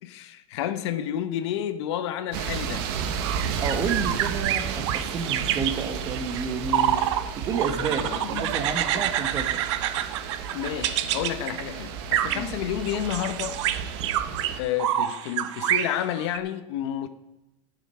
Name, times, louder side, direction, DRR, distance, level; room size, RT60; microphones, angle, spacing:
voice 1, 0.0-2.8 8.0-8.6 8.9-9.1 10.5-13.6 14.0-14.1 14.5-17.1, left 11 dB, 70° left, 1.1 m, -30 dB
sound 1, 2.3-14.6, right 7 dB, 55° right, 1.2 m, -33 dB
sound 2, 3.1-7.3 7.5-11.6 12.1-12.5 12.8-16.4, right 11 dB, 80° right, 0.8 m, -28 dB
voice 2, 3.6-7.0 7.4-9.6 12.3-12.5, right 5 dB, 25° right, 1.1 m, -30 dB
14.0 x 7.3 x 5.6 m
supercardioid pair, 165°, 15 cm